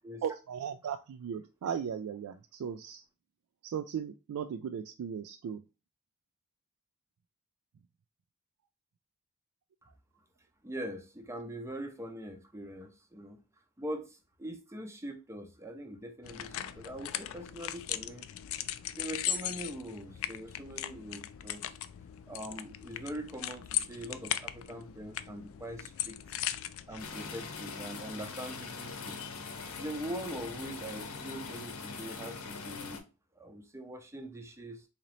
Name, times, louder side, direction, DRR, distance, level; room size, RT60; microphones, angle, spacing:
voice 1, 0.2-3.0 3.6-5.6, right 8 dB, 80° right, 0.3 m, -37 dB
voice 2, 10.6-13.4 13.8-18.3 18.9-21.7 22.3-26.2 26.9-29.2 29.8-33.0 33.4-34.9, right 1 dB, 15° right, 0.5 m, -42 dB
sound 1, 16.2-27.1, left 11 dB, 65° left, 0.3 m, -38 dB
sound 2, 27.0-33.0, left 4 dB, 80° left, 0.8 m, -42 dB
3.8 x 2.9 x 3.0 m
head